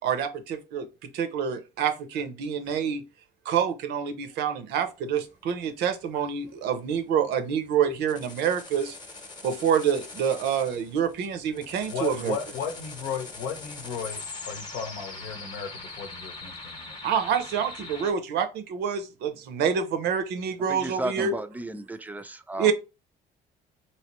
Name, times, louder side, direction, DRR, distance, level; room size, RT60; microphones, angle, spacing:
voice 1, 0.0-0.9 1.1-3.0 3.5-9.0 9.4-12.4 17.0-21.3 22.6-22.7, right 7 dB, 80° right, 0.6 m, -27 dB
sound 1, 5.2-18.1, left 3 dB, 25° left, 0.8 m, -42 dB
voice 2, 11.9-17.0, left 6 dB, 85° left, 0.8 m, -35 dB
voice 3, 20.7-22.7, right 1 dB, 10° right, 0.3 m, -34 dB
3.1 x 2.8 x 2.9 m
cardioid pair, 110°, 17 cm